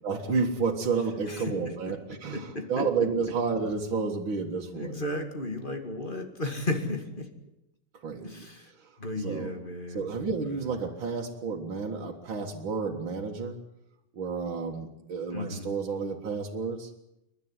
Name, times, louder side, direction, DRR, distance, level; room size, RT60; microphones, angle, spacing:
voice 1, 0.0-5.0 8.0-8.5 8.8-9.5 9.9-13.6 14.1-16.9, right 5 dB, 80° right, 0 dB, 2.6 m, -31 dB
voice 2, 2.3-2.9 4.7-7.3 8.2-8.7 9.0-10.1 10.4-10.7 15.3-15.7, left 2 dB, 25° left, 5 dB, 2.5 m, -34 dB
29.0 x 12.0 x 9.8 m, 0.85 s
omnidirectional pair, 2.1 m